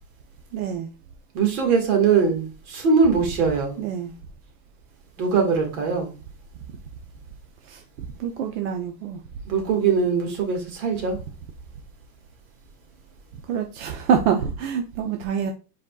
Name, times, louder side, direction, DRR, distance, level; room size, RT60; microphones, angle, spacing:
voice 1, 0.5-0.9 3.8-4.1 7.7-7.8 8.2-9.2 13.5-15.5, right 7 dB, 50° right, 0.6 m, -25 dB
voice 2, 1.3-3.8 5.2-6.1 9.5-11.2, right 5 dB, 70° right, 1.9 m, -21 dB
5.0 x 4.2 x 2.3 m
supercardioid pair, 140°, 46 cm